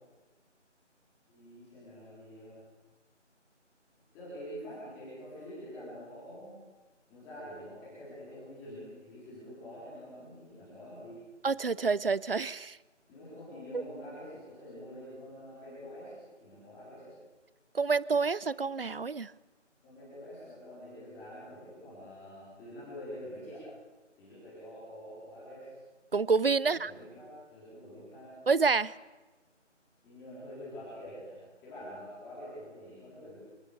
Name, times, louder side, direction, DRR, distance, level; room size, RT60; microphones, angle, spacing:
voice 1, 1.3-2.6 4.1-6.6 7.1-11.2 13.1-17.1 19.8-23.6 24.2-25.7 26.6-28.3 30.0-33.4, equal, 5° left, -10 dB, 4.1 m, -46 dB
voice 2, 11.4-12.8 13.7-13.8 17.7-19.3 26.1-26.9 28.5-29.0, right 4 dB, 50° right, 22 dB, 0.6 m, -28 dB
27.5 x 18.5 x 6.8 m, 1.2 s
figure-of-eight pair, 165°, 37 cm